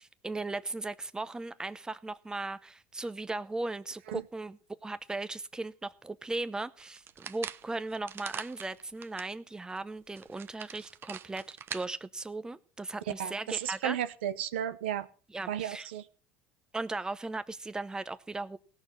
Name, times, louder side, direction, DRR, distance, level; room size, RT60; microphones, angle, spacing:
voice 1, 0.0-14.0 15.3-15.9 16.7-18.6, right 2 dB, 10° right, 0.8 m, -37 dB
sound 1, 6.8-9.3 9.8-9.9 10.2-11.9, right 8 dB, 40° right, 0.9 m, -43 dB
voice 2, 13.2-15.1 15.5-16.0, right 10 dB, 90° right, 0.9 m, -33 dB
16.5 x 6.4 x 7.4 m
supercardioid pair, 90°, 6 cm